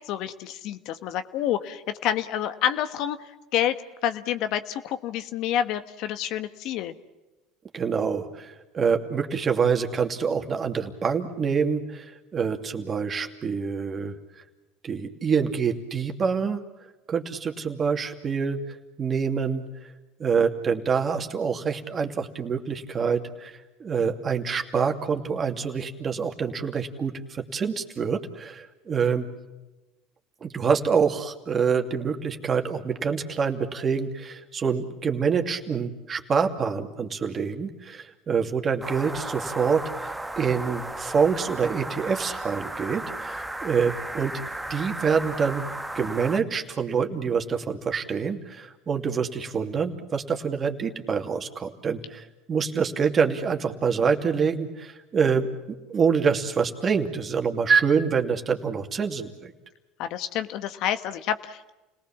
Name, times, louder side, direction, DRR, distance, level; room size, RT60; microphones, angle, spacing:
voice 1, 0.0-6.9 60.0-61.7, left 10 dB, 65° left, 10 dB, 1.4 m, -28 dB
voice 2, 7.7-14.1 14.8-16.6 17.1-19.6 20.2-29.3 30.4-44.3 44.7-45.6 45.9-59.5, right 6 dB, 35° right, 5 dB, 2.7 m, -26 dB
sound 1, 38.8-46.4, right 1 dB, 10° right, 1.4 m, -35 dB
30.0 x 19.0 x 7.4 m, 1.1 s
supercardioid pair, 90°, 0 cm